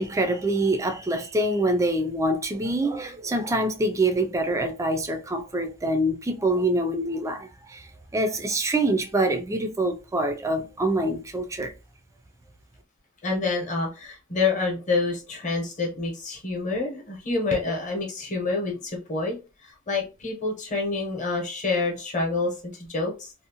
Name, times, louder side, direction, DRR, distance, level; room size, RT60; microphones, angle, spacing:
voice 1, 0.0-11.7, right 1 dB, 15° right, 0.3 m, -25 dB
voice 2, 13.2-23.3, left 3 dB, 35° left, 0.8 m, -27 dB
2.6 x 2.0 x 2.8 m
head